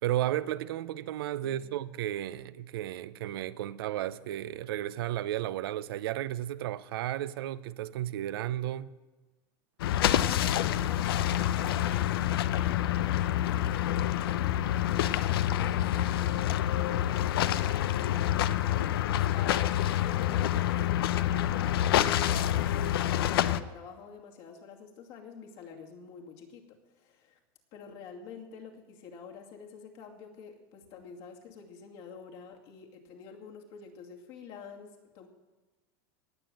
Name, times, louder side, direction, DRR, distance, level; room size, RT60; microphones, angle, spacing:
voice 1, 0.0-8.9, right 13 dB, 80° right, 0.7 m, -33 dB
voice 2, 1.4-1.8 10.0-27.4 27.7-35.3, left 6 dB, 55° left, 2.5 m, -48 dB
sound 1, 9.8-23.6, left 12 dB, 85° left, 0.6 m, -27 dB
18.5 x 7.1 x 7.7 m
supercardioid pair, 135°, 12 cm